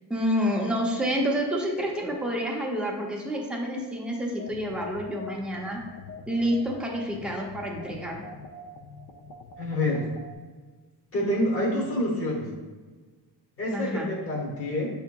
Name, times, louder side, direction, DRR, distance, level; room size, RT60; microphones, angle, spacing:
voice 1, 0.1-5.8 6.3-8.2 13.7-14.1, equal, ahead, -2 dB, 0.5 m, -28 dB
sound 1, 4.4-10.3, left 3 dB, 55° left, 0.5 m, -44 dB
voice 2, 9.6-10.1 11.1-12.5 13.6-14.0 14.2-14.9, left 1 dB, 30° left, -3 dB, 0.8 m, -27 dB
7.6 x 2.7 x 2.2 m, 1.4 s
wide cardioid pair, 160°, 42 cm